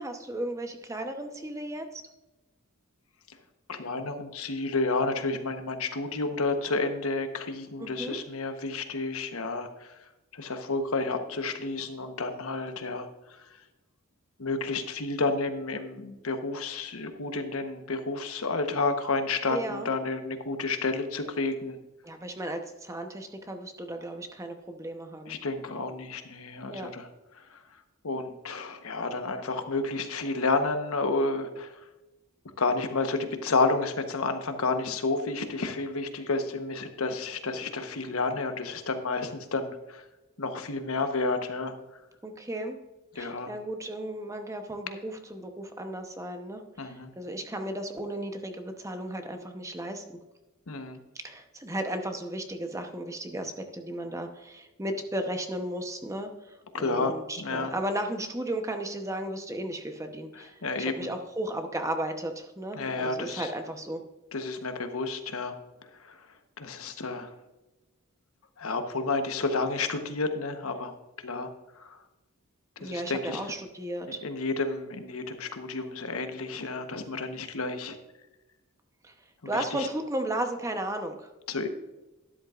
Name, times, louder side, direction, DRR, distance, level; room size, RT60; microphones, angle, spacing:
voice 1, 0.0-2.0 7.8-8.2 19.5-19.9 22.0-25.3 26.7-26.9 42.2-42.8 43.1-50.2 51.1-64.0 72.8-74.2 79.0-79.1 79.4-81.3, right 1 dB, 15° right, 5 dB, 0.9 m, -35 dB
voice 2, 3.7-10.0 10.3-13.1 14.4-21.8 25.3-27.1 27.5-27.6 28.0-31.7 32.6-40.0 40.4-41.7 43.2-43.5 46.8-47.1 50.7-51.0 56.7-57.7 60.4-60.9 62.8-63.5 64.3-65.5 66.0-66.2 66.6-67.3 68.6-70.9 71.2-71.5 71.8-72.0 72.8-73.5 74.2-78.0 79.5-79.9 81.5-81.7, left 3 dB, 70° left, 7 dB, 1.1 m, -30 dB
12.5 x 10.5 x 2.5 m, 1.0 s
head